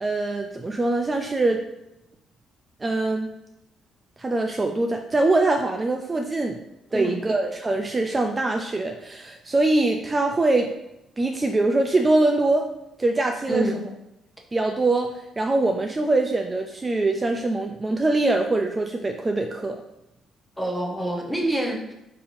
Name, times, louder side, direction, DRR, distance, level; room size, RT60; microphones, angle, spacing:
voice 1, 0.0-1.6 2.8-3.3 4.2-6.6 6.9-10.7 11.2-12.7 13.0-13.7 14.5-19.8, right 2 dB, 25° right, 4 dB, 0.3 m, -23 dB
voice 2, 6.9-7.2 13.5-13.8 20.6-21.9, right 1 dB, 5° left, 1 dB, 0.8 m, -26 dB
4.0 x 2.9 x 2.6 m, 0.88 s
supercardioid pair, 70°, 0 cm